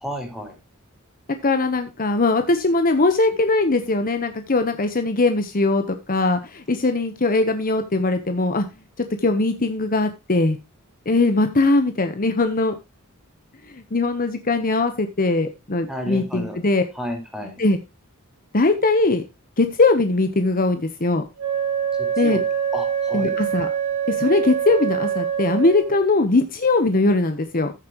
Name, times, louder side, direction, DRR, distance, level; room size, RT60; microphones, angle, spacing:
voice 1, 0.0-0.5 15.9-16.6 17.0-17.6 22.2-22.4 22.7-23.3, equal, ahead, 3 dB, 4.1 m, -31 dB
voice 2, 1.4-8.6 9.2-10.6 11.1-12.7 13.7-16.8 17.6-17.8 18.5-19.2 19.6-21.2 22.2-22.4 23.1-23.7 24.1-27.7, left 2 dB, 40° left, 8 dB, 1.0 m, -20 dB
Wind instrument woodwind instrument, 21.4-26.0, right 8 dB, 85° right, 5.2 m, -25 dB
14.5 x 7.3 x 3.0 m, 0.26 s
head